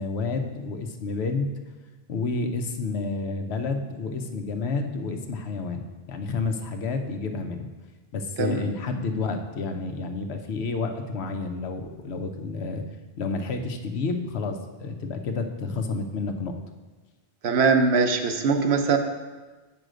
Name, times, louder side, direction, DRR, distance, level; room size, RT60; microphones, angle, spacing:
voice 1, 0.0-1.5 2.1-7.7 8.1-12.8 13.2-16.5, left 3 dB, 90° left, 6 dB, 1.0 m, -30 dB
voice 2, 17.4-19.0, right 5 dB, 85° right, 6 dB, 1.0 m, -21 dB
7.8 x 5.6 x 5.0 m, 1.3 s
omnidirectional pair, 1.1 m